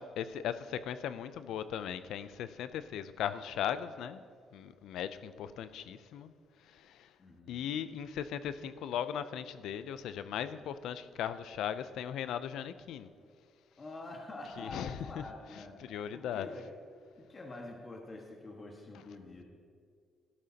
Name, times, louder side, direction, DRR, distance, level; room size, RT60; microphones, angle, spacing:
voice 1, 0.0-4.2 4.5-6.3 6.7-7.1 7.5-13.1 14.6-15.2 15.8-16.5, left 9 dB, 80° left, 13 dB, 0.5 m, -38 dB
voice 2, 7.2-7.7 13.8-16.7 17.2-19.4, left 2 dB, 35° left, 0 dB, 1.6 m, -46 dB
13.0 x 12.0 x 2.9 m, 2.2 s
cardioid pair, 90°, 0 cm